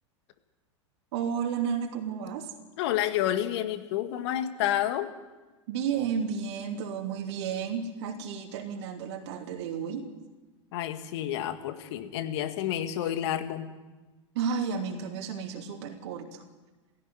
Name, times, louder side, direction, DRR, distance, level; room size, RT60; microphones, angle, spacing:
voice 1, 1.1-2.5 5.7-10.1 14.3-16.4, right 7 dB, 60° right, 1 dB, 3.0 m, -32 dB
voice 2, 2.8-5.1 10.7-13.7, left 11 dB, 60° left, 9 dB, 1.9 m, -29 dB
17.0 x 16.5 x 9.6 m, 1.2 s
hypercardioid pair, 100°, 16 cm